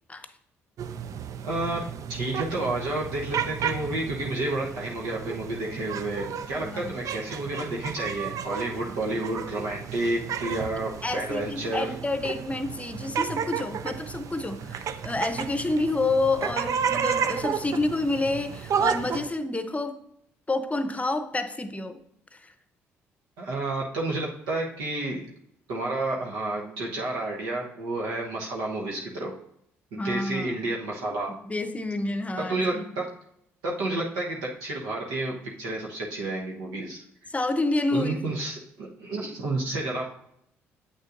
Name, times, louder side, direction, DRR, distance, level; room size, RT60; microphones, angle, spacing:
sound 1, 0.8-19.3, right 7 dB, 60° right, 0.4 m, -32 dB
voice 1, 1.4-1.8 2.1-11.9 23.4-25.3 25.7-29.3 29.9-31.3 32.5-33.0 33.6-37.0 37.9-40.0, right 2 dB, 80° right, 1.1 m, -30 dB
voice 2, 6.6-7.1 11.0-20.0 20.5-22.0 22.4-22.5 30.0-30.6 31.4-32.8 37.3-38.3, left 2 dB, 20° left, 0.7 m, -29 dB
7.8 x 6.3 x 2.6 m
hypercardioid pair, 55°, 7 cm